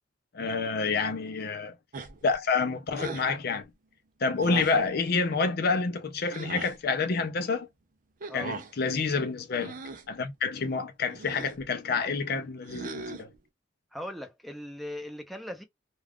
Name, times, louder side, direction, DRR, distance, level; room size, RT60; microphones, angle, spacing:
voice 1, 0.3-1.8 2.2-3.7 4.2-7.7 8.3-9.8 10.1-13.3, left 4 dB, 55° left, 0.5 m, -28 dB
sound 1, 1.9-2.3 2.9-3.3 4.4-4.9 6.3-6.8 8.2-8.7 9.6-10.1 11.1-11.6 12.7-13.4, right 4 dB, 45° right, 0.5 m, -39 dB
voice 2, 13.9-15.6, left 1 dB, ahead, 0.6 m, -39 dB
2.4 x 2.3 x 3.4 m
head